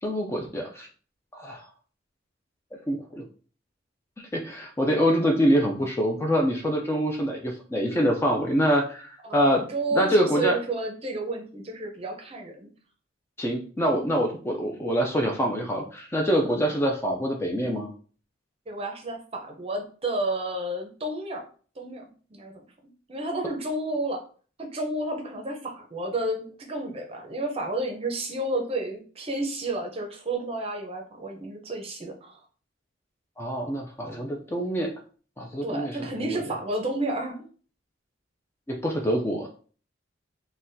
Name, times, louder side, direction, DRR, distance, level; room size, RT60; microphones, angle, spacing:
voice 1, 0.0-0.9 1.3-1.6 2.9-3.2 4.3-9.6 9.9-10.6 13.4-17.9 33.4-34.9 35.4-36.4 38.7-39.5, equal, 15° left, 1 dB, 0.3 m, -25 dB
voice 2, 9.2-12.7 16.4-16.5 18.7-21.4 21.8-22.0 22.3-22.6 23.1-24.2 24.6-32.4 35.6-37.5, right 2 dB, 30° right, 2 dB, 0.6 m, -31 dB
3.9 x 2.2 x 2.6 m, 0.41 s
head